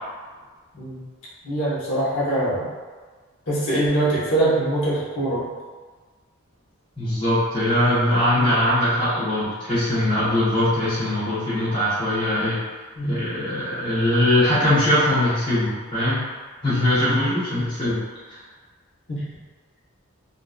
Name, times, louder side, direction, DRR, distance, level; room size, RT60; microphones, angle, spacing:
voice 1, 1.4-2.7 3.5-5.4 8.3-8.6 13.0-13.1 17.1-17.2 19.1-19.2, right 1 dB, 65° left, -9 dB, 0.8 m, -23 dB
voice 2, 7.0-12.6 13.0-16.2 16.6-18.0 18.3-18.4, left 1 dB, 20° left, -12 dB, 0.7 m, -21 dB
2.5 x 2.2 x 2.4 m, 1.4 s
head